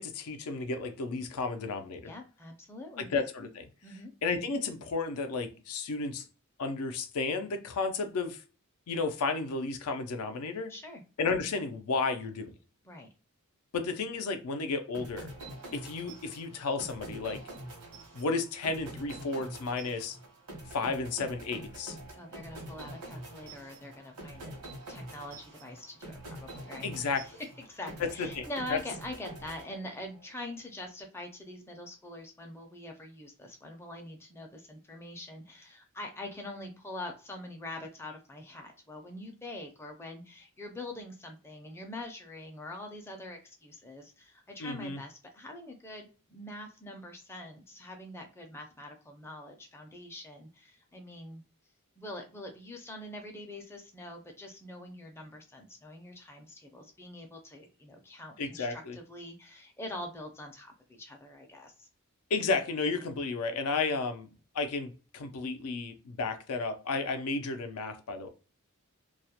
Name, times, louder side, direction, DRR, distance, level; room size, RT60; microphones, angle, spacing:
voice 1, 0.0-2.1 3.0-3.6 4.2-6.2 6.6-8.4 8.9-10.7 11.2-12.5 13.7-15.3 15.7-17.4 18.1-20.2 20.7-22.0 26.8-27.2 28.0-28.8 44.6-45.0 58.4-59.0 62.3-64.3 64.5-68.3, left 4 dB, 75° left, 0.4 m, -33 dB
voice 2, 2.0-3.1 3.8-4.1 10.7-11.0 12.8-13.1 22.1-24.6 24.9-26.9 27.2-27.3 27.7-51.4 52.0-61.9, left 1 dB, 10° left, 0.4 m, -44 dB
sound 1, 14.9-30.2, right 1 dB, 90° right, 0.9 m, -46 dB
2.3 x 2.1 x 2.7 m
head